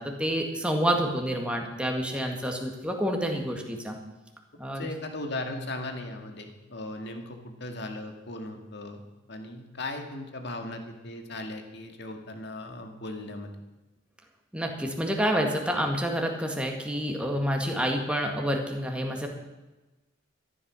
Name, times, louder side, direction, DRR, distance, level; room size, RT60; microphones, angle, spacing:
voice 1, 0.0-4.0 4.6-4.8 14.5-19.3, equal, 5° right, 2 dB, 1.9 m, -28 dB
voice 2, 4.8-9.0 9.3-13.5, left 2 dB, 60° left, 5 dB, 2.0 m, -37 dB
13.5 x 11.0 x 6.3 m, 1.1 s
head